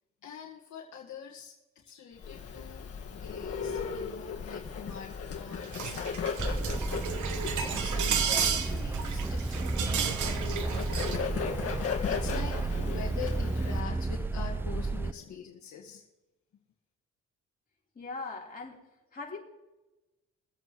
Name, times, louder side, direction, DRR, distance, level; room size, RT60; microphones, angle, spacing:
voice 1, 0.2-1.5 1.8-6.5 7.5-12.5 12.8-16.0, left 7 dB, 70° left, 0 dB, 1.7 m, -44 dB
Bird, 2.2-13.8, left 6 dB, 50° left, 1.8 m, -37 dB
sound 1, 5.6-11.2, right 7 dB, 75° right, 1.3 m, -33 dB
sound 2, 6.4-15.1, right 3 dB, 10° right, 0.3 m, -32 dB
voice 2, 17.9-18.8 19.1-19.4, left 3 dB, 30° left, -3 dB, 3.7 m, -39 dB
23.0 x 8.0 x 3.1 m, 1.0 s
cardioid pair, 90°, 30 cm